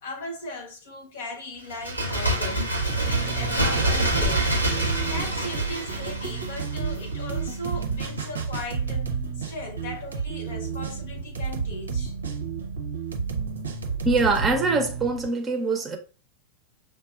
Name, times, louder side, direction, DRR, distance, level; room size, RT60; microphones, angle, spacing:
voice 1, 0.0-2.7 3.0-4.5 5.0-12.1, left 2 dB, 60° left, 0.8 m, -37 dB
Bird, 1.7-7.2 7.5-7.6, right 1 dB, 90° left, 0.8 m, -26 dB
sound 1, 2.8-15.3, right 5 dB, 75° right, 0.7 m, -31 dB
voice 2, 14.0-16.0, right 3 dB, 20° right, 0.6 m, -23 dB
6.1 x 2.3 x 2.4 m
figure-of-eight pair, 90°, 0 cm